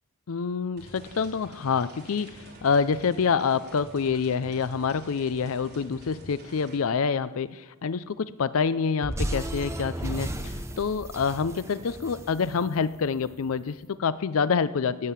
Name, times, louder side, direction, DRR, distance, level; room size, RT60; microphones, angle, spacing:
voice 1, 0.3-15.1, left 5 dB, 65° left, 15 dB, 0.5 m, -27 dB
sound 1, 0.8-6.8, right 1 dB, 45° right, 3.2 m, -48 dB
sound 2, 9.0-13.4, right 1 dB, 10° right, 0.9 m, -34 dB
16.0 x 7.5 x 8.2 m, 1.2 s
head